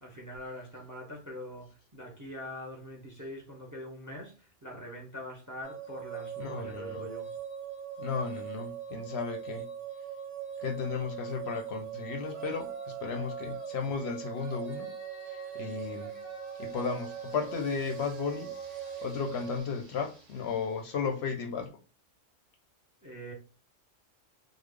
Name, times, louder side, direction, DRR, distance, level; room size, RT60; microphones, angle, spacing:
voice 1, 0.0-7.3 23.0-23.3, equal, 20° right, 0.5 m, -43 dB
sound 1, 5.6-19.6, right 8 dB, 45° right, 1.0 m, -41 dB
voice 2, 6.4-7.1 8.0-9.7 10.6-14.9 15.3-16.3 16.6-21.8, left 5 dB, 65° left, 0.7 m, -35 dB
Yell, 12.2-13.8 14.3-21.1, right 2 dB, 70° right, 1.1 m, -51 dB
3.2 x 2.0 x 3.5 m
omnidirectional pair, 1.3 m